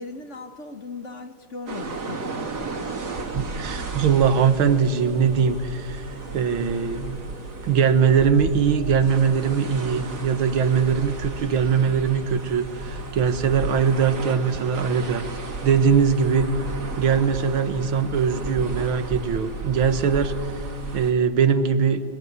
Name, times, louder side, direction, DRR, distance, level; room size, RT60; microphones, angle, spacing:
voice 1, 0.0-2.6, left 4 dB, 40° left, 8 dB, 1.3 m, -38 dB
sound 1, 1.7-21.1, right 3 dB, 50° right, 2.7 m, -34 dB
sound 2, 2.0-14.0, left 1 dB, 25° left, 2.2 m, -47 dB
voice 2, 3.3-6.0 6.3-7.4 7.6-15.2 15.6-16.5 17.0-20.3 20.9-22.0, right 6 dB, 90° right, 10 dB, 2.1 m, -21 dB
22.0 x 22.0 x 9.6 m, 2.1 s
omnidirectional pair, 2.2 m